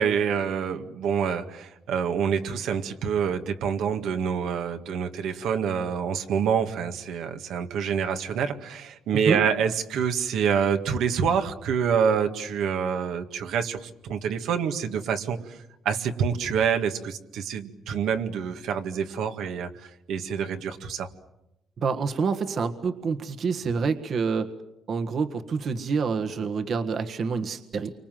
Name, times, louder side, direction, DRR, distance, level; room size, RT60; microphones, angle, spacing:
voice 1, 0.0-15.6 15.9-21.1, right 7 dB, 80° right, 6 dB, 1.9 m, -27 dB
voice 2, 21.8-24.5 24.9-27.9, right 5 dB, 55° right, 7 dB, 1.6 m, -27 dB
29.0 x 25.0 x 7.7 m, 0.89 s
cardioid pair, 90°, 0 cm